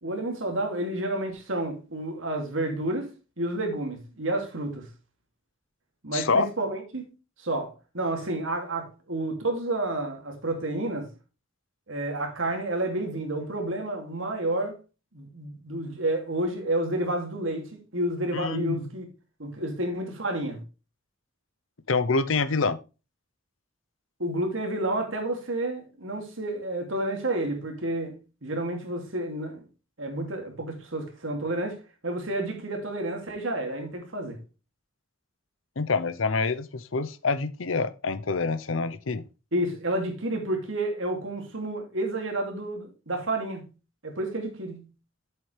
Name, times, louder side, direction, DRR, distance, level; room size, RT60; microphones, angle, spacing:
voice 1, 0.0-3.1 3.4-4.9 6.0-7.1 7.4-11.1 11.9-14.8 15.1-19.1 19.4-20.6 24.2-29.6 30.0-34.4 39.5-43.7 44.0-44.9, right 1 dB, 75° right, 2.6 m, -30 dB
voice 2, 6.1-6.5 18.3-18.9 21.9-22.8 35.8-39.2, left 4 dB, 75° left, 0.7 m, -26 dB
7.9 x 7.7 x 3.3 m
head